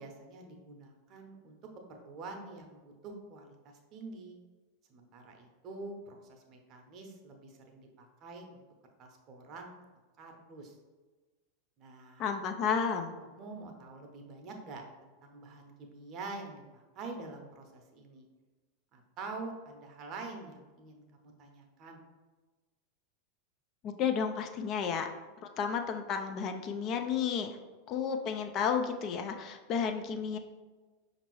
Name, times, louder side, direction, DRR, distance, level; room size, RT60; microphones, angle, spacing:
voice 1, 0.0-1.6 1.9-4.4 4.9-8.7 9.0-9.7 10.2-10.8 11.8-12.3 13.3-18.3 18.9-22.0, right 3 dB, 40° right, 3 dB, 0.7 m, -46 dB
voice 2, 12.2-13.1 23.8-25.1 25.6-27.6 27.9-30.4, left 6 dB, 40° left, 6 dB, 0.4 m, -32 dB
5.2 x 2.6 x 3.0 m, 1.3 s
figure-of-eight pair, 90°, 0 cm